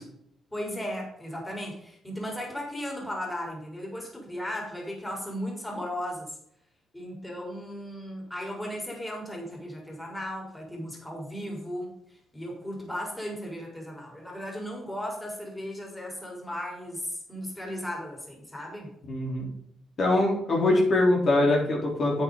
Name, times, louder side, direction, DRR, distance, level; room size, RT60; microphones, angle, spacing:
voice 1, 0.5-6.3 6.9-18.9, equal, 10° left, -1 dB, 4.4 m, -36 dB
voice 2, 19.1-19.5 20.0-22.2, left 2 dB, 50° left, -2 dB, 4.1 m, -23 dB
9.6 x 9.0 x 4.1 m, 0.75 s
cardioid pair, 90°, 0 cm